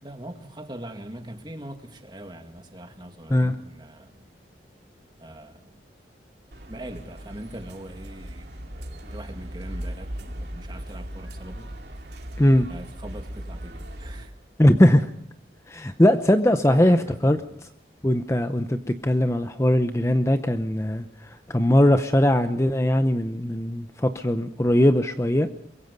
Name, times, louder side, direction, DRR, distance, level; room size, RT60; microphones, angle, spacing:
voice 1, 0.0-4.3 5.2-5.9 6.7-11.7 12.7-14.3 16.7-17.4, right 1 dB, 25° right, 2.1 m, -41 dB
sound 1, 6.5-14.3, equal, 70° right, 2.5 m, -38 dB
voice 2, 14.6-15.1 15.7-17.4 18.0-25.5, left 1 dB, 15° left, 0.7 m, -20 dB
24.5 x 22.5 x 5.3 m
head